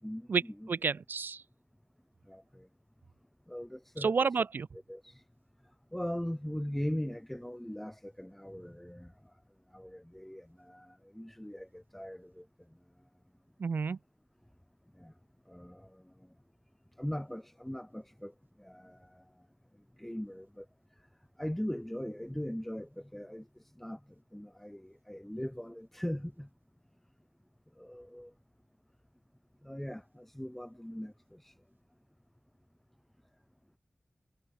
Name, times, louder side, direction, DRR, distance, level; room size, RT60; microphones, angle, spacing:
voice 1, 0.0-0.7 2.3-2.7 3.5-4.3 4.9-5.2 5.9-9.1 9.7-12.5 14.9-15.1 15.5-16.3 17.0-19.2 20.0-20.7 21.4-24.0 24.3-26.5 27.8-28.3 29.6-31.6, equal, 5° left, 1.1 m, -40 dB
voice 2, 0.7-1.4 4.0-4.7 13.6-14.0, right 5 dB, 90° right, 0.6 m, -30 dB
wide cardioid pair, 70°, 3 cm